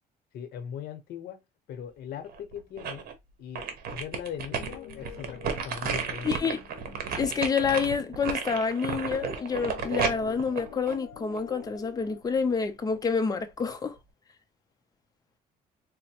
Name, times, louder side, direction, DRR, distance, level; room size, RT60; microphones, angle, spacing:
voice 1, 0.3-1.4 1.7-3.1 3.4-6.5, left 9 dB, 70° left, 0.9 m, -40 dB
sound 1, 2.3-3.1 3.6-11.6 12.0-12.1, right 6 dB, 60° right, 0.9 m, -33 dB
sound 2, 4.5-12.2, left 10 dB, 90° left, 0.6 m, -47 dB
voice 2, 6.2-6.6 7.2-14.0, left 5 dB, 20° left, 0.6 m, -28 dB
4.0 x 2.1 x 2.8 m
cardioid pair, 110°, 17 cm